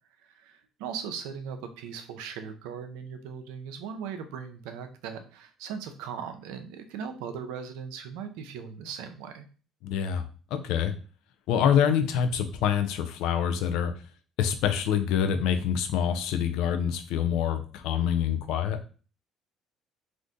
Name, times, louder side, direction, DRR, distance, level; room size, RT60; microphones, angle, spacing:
voice 1, 0.2-9.4, right 7 dB, 85° right, 7 dB, 0.4 m, -39 dB
voice 2, 9.8-10.2 10.5-10.9 11.5-13.9 14.4-18.8, left 8 dB, 80° left, 7 dB, 0.4 m, -26 dB
2.6 x 2.5 x 3.5 m, 0.38 s
supercardioid pair, 75°, 0 cm